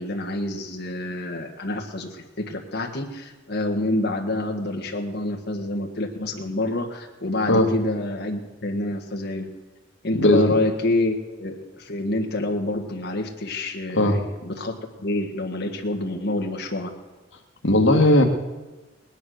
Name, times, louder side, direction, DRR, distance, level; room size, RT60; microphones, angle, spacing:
voice 1, 0.0-9.5 10.0-16.9, left 2 dB, 60° left, 1 dB, 1.8 m, -27 dB
voice 2, 17.6-18.2, left 1 dB, 80° left, 3 dB, 1.8 m, -16 dB
19.5 x 10.5 x 6.6 m, 1.2 s
head